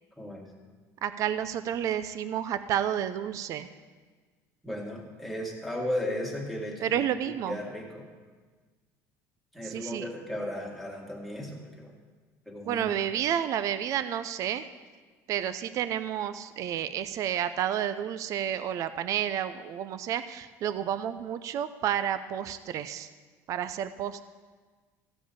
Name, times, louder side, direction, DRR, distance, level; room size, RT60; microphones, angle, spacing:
voice 1, 0.2-0.5 4.6-8.1 9.5-11.9 12.5-13.2, left 1 dB, ahead, -2 dB, 1.8 m, -36 dB
voice 2, 1.0-3.7 6.8-7.6 9.6-10.1 12.7-14.6 15.3-23.1 23.5-24.2, right 10 dB, 50° right, 12 dB, 0.5 m, -30 dB
15.0 x 5.0 x 8.4 m, 1.4 s
cardioid pair, 130°, 7 cm